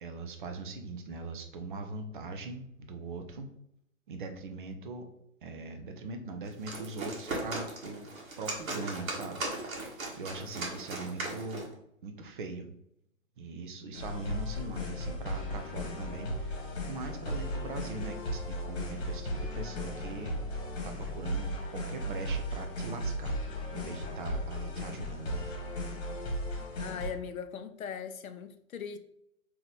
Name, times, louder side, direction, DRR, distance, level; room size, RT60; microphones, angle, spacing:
voice 1, 0.0-3.5 4.1-5.1 5.4-8.1 8.4-11.7 12.0-12.7 13.4-20.3 20.8-23.4 23.7-25.5, right 3 dB, 40° right, 0.6 m, -41 dB
sound 1, 6.4-11.7, right 2 dB, 75° right, 1.3 m, -38 dB
sound 2, 13.9-27.1, equal, 45° left, 1.5 m, -36 dB
voice 2, 26.8-29.0, left 7 dB, 80° left, 0.6 m, -39 dB
3.7 x 3.0 x 3.3 m
figure-of-eight pair, 130°, 41 cm